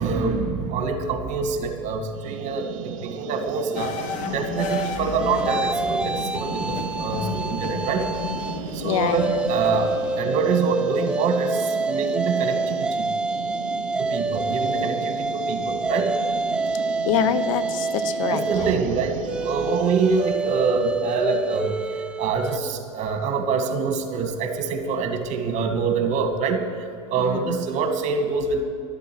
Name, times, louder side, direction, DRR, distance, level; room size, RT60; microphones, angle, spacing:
voice 1, 0.0-3.9 4.3-8.1 8.7-9.9 10.2-13.1 14.0-16.1 18.2-21.7 22.2-26.7 27.1-28.6, right 5 dB, 45° right, 5 dB, 1.9 m, -25 dB
sound 1, 2.1-20.4, right 9 dB, 75° right, 0.8 m, -36 dB
sound 2, 3.8-10.2, left 7 dB, 50° left, 1.0 m, -33 dB
sound 3, 4.6-8.6 9.0-22.6, right 3 dB, 5° right, 0.3 m, -27 dB
voice 2, 8.8-9.3 17.1-18.4 27.2-27.6, left 9 dB, 80° left, 13 dB, 0.7 m, -25 dB
11.5 x 8.2 x 8.5 m, 2.3 s
supercardioid pair, 110°, 17 cm